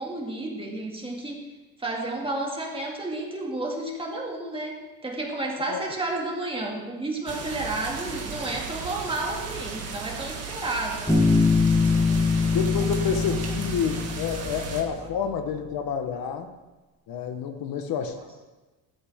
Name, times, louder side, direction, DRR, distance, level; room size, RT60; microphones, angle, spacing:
voice 1, 0.0-1.4 1.8-11.2, right 2 dB, 15° right, 0 dB, 2.3 m, -31 dB
sound 1, 7.3-14.8, right 5 dB, 40° right, 2.1 m, -36 dB
Bass guitar, 11.1-14.8, left 4 dB, 10° left, 3.3 m, -23 dB
voice 2, 12.5-16.5 17.1-18.2, left 7 dB, 60° left, 6 dB, 1.3 m, -29 dB
15.0 x 13.0 x 3.6 m, 1.2 s
cardioid pair, 150°, 39 cm